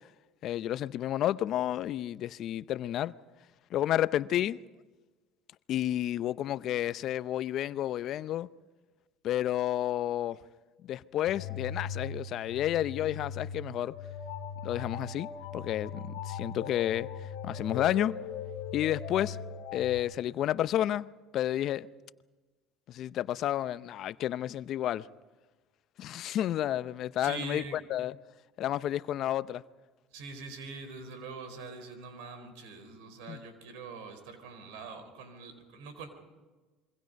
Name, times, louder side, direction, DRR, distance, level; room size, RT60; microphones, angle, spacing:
voice 1, 0.4-3.1 3.7-4.6 5.7-8.5 9.2-10.4 10.9-13.9 14.6-17.1 17.4-18.2 18.7-19.4 19.7-21.1 21.3-21.9 22.9-25.1 26.0-27.6 27.9-28.1 28.6-29.6 33.3-33.4, left 12 dB, 55° left, 0.6 m, -31 dB
sound 1, 11.3-20.0, left 6 dB, 80° left, 2.1 m, -39 dB
voice 2, 27.2-27.8 30.1-36.1, right 4 dB, 80° right, 4.4 m, -43 dB
26.5 x 23.5 x 5.3 m
supercardioid pair, 90°, 0 cm